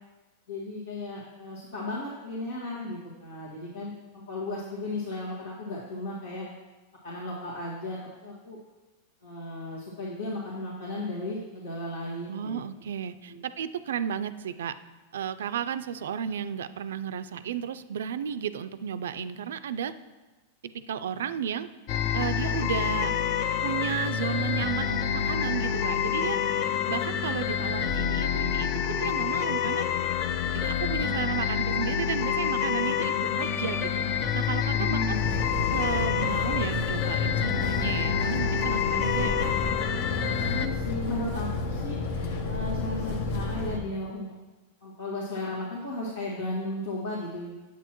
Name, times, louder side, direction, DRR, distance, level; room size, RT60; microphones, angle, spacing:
voice 1, 0.5-6.5 7.0-8.6 9.2-12.7 13.3-13.4 34.7-35.4 40.5-44.3 44.8-47.5, left 2 dB, 85° left, -7 dB, 1.9 m, -35 dB
voice 2, 12.3-14.8 15.1-20.0 20.9-21.7 22.1-23.2 23.6-26.6 26.9-29.9 30.5-34.1 34.3-35.2 35.7-39.5, right 8 dB, 85° right, 12 dB, 0.4 m, -33 dB
sound 1, 21.9-40.7, left 8 dB, 40° left, 0.5 m, -27 dB
sound 2, 35.1-43.8, left 3 dB, 70° left, 1.0 m, -32 dB
9.2 x 8.2 x 3.0 m, 1.2 s
supercardioid pair, 140°, 0 cm